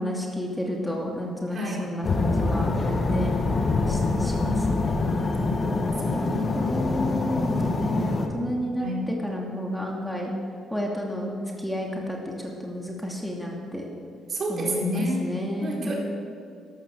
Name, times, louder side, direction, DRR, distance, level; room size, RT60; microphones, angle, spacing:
voice 1, 0.0-2.7 3.1-3.3 3.9-5.2 6.1-10.3 10.7-11.3 11.6-12.2 12.6-13.9 14.5-15.9, equal, 5° left, -1 dB, 2.6 m, -31 dB
voice 2, 1.5-1.8 5.4-5.8 6.0-6.5 8.8-9.0 14.3-15.9, right 1 dB, 50° right, -2 dB, 4.2 m, -30 dB
sound 1, 2.0-8.3, left 3 dB, 40° left, 1.8 m, -25 dB
13.5 x 12.0 x 6.4 m, 2.2 s
supercardioid pair, 70°, 0 cm